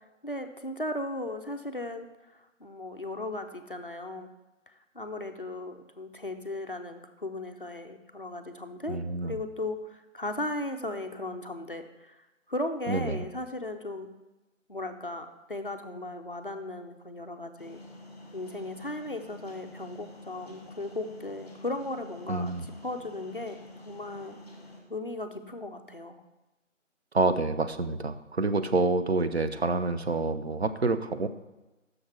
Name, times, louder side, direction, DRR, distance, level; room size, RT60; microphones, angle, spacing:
voice 1, 0.2-4.3 4.7-14.1 14.7-17.8 18.3-22.5 22.8-24.4 24.9-26.2, left 2 dB, 45° left, 6 dB, 0.4 m, -37 dB
voice 2, 8.9-9.4 12.9-13.2 22.3-22.6 27.1-31.3, right 3 dB, 55° right, 10 dB, 0.4 m, -27 dB
sound 1, 17.6-24.8, left 2 dB, 30° left, 1.3 m, -48 dB
6.4 x 4.6 x 6.0 m, 1.1 s
figure-of-eight pair, 175°, 38 cm